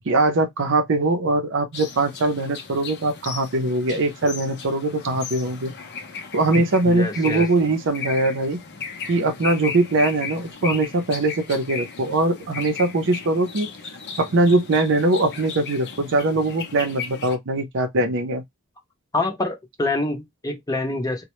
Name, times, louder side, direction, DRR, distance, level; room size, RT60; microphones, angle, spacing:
voice 1, 0.1-5.7 6.3-8.6 9.1-13.7 14.2-18.4, right 2 dB, 60° right, 0.6 m, -21 dB
sound 1, 1.7-17.4, left 6 dB, 55° left, 0.6 m, -36 dB
voice 2, 6.8-7.5 19.1-21.2, left 2 dB, 15° left, 0.6 m, -26 dB
2.1 x 2.1 x 2.9 m
head